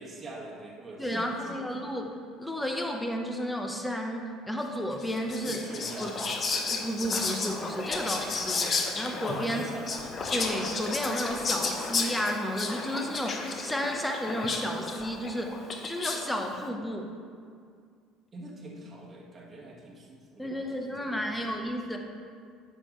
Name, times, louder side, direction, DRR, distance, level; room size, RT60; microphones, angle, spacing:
voice 1, 0.0-1.9 2.5-2.6 5.4-6.3 8.8-10.2 13.9-14.0 18.3-21.5, right 2 dB, 30° right, -3 dB, 1.9 m, -44 dB
voice 2, 1.0-5.6 6.0-6.1 6.7-9.6 10.3-15.6 15.9-17.1 20.4-22.0, equal, 10° left, 2 dB, 1.1 m, -32 dB
Whispering, 5.0-16.3, left 4 dB, 40° left, 1.0 m, -33 dB
9.6 x 6.7 x 3.3 m, 2.1 s
hypercardioid pair, 75°, 0 cm